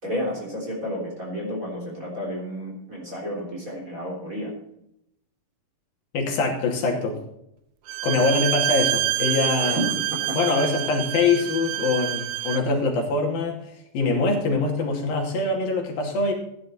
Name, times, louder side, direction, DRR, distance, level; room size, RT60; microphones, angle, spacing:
voice 1, 0.0-4.5 9.6-10.4, equal, 25° right, -2 dB, 3.6 m, -31 dB
voice 2, 6.1-7.2 8.0-9.8 10.3-13.6 13.9-16.3, left 3 dB, 85° left, -1 dB, 4.3 m, -23 dB
Bowed string instrument, 7.9-12.7, right 15 dB, 90° right, 1.6 m, -27 dB
15.0 x 10.5 x 4.4 m, 0.78 s
omnidirectional pair, 4.1 m